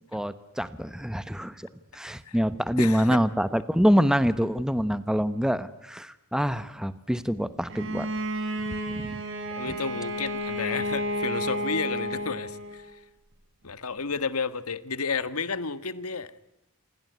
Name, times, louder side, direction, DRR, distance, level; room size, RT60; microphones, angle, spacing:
voice 1, 0.0-1.7 1.9-8.1 8.9-9.2 9.7-9.8, equal, 5° right, 14 dB, 1.0 m, -26 dB
voice 2, 2.8-3.2 9.5-13.0 13.6-16.3, left 5 dB, 85° left, 14 dB, 1.5 m, -32 dB
Bowed string instrument, 7.7-12.8, equal, 60° right, 5.4 m, -31 dB
28.0 x 21.0 x 9.5 m, 0.93 s
head